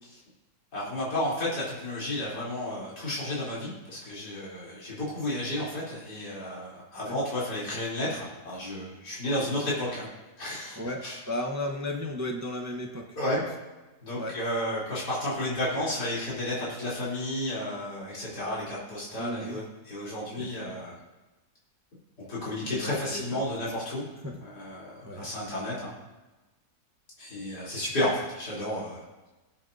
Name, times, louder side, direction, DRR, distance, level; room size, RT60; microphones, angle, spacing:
voice 1, 0.7-10.0 10.4-11.2 13.2-13.4 14.0-20.9 22.3-24.0 24.4-25.9 27.2-29.3, left 1 dB, 70° left, -8 dB, 3.9 m, -32 dB
voice 2, 10.8-13.1 14.2-14.4 19.2-19.6 20.4-20.5 22.6-23.4 24.2-24.4 25.0-25.3, left 1 dB, 15° right, 2 dB, 0.5 m, -34 dB
19.5 x 7.5 x 2.6 m, 1.1 s
omnidirectional pair, 1.8 m